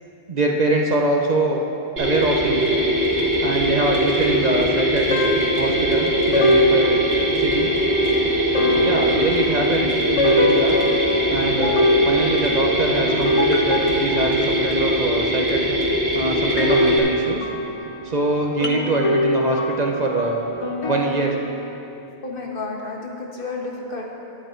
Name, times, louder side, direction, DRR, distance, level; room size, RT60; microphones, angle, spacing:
voice 1, 0.3-1.6 2.0-2.7 3.4-5.2 5.6-6.9 7.4-7.7 8.7-10.8 11.3-15.8 16.1-17.4 18.0-20.5 20.9-21.4, right 2 dB, 45° right, 1 dB, 0.8 m, -23 dB
Mechanisms, 2.0-17.0, equal, 65° right, 2.0 m, -21 dB
sound 1, 2.2-3.8 5.1-15.1 16.5-21.7, left 1 dB, 40° left, 0.6 m, -24 dB
voice 2, 22.2-24.1, left 3 dB, 55° left, -1 dB, 1.3 m, -32 dB
11.0 x 8.8 x 4.5 m, 2.7 s
omnidirectional pair, 1.1 m